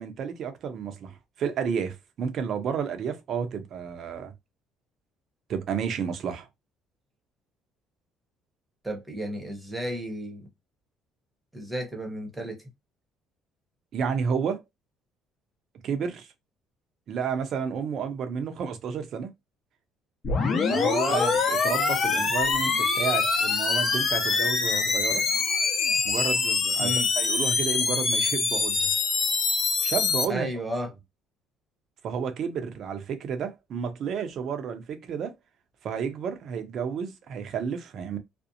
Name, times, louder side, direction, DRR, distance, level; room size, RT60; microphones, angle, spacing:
voice 1, 0.0-4.3 5.5-6.5 13.9-14.6 15.8-16.3 17.1-19.3 20.7-25.2 26.0-28.9 29.8-30.5 32.0-35.4 35.8-38.2, right 7 dB, 55° right, 0.6 m, -31 dB
voice 2, 8.8-10.5 11.5-12.6 21.1-21.3 26.8-27.1 30.3-30.9, equal, 10° right, 0.9 m, -32 dB
sound 1, 20.2-30.2, left 4 dB, 40° left, 0.7 m, -24 dB
2.5 x 2.0 x 2.7 m
cardioid pair, 110°, 0 cm